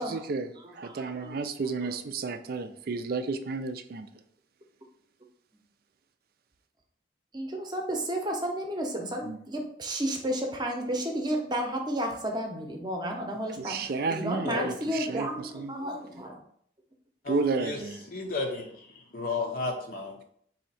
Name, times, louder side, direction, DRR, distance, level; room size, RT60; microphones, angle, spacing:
voice 1, 0.0-4.1 9.2-9.4 13.7-15.3 15.5-15.7 17.3-18.1, right 4 dB, 55° right, 9 dB, 0.4 m, -32 dB
voice 2, 0.6-1.4 1.8-2.0 7.3-16.4, right 1 dB, 25° right, 2 dB, 0.7 m, -32 dB
voice 3, 18.1-18.7 19.1-20.2, left 3 dB, 50° left, 1 dB, 0.6 m, -32 dB
4.3 x 2.8 x 4.1 m, 0.63 s
head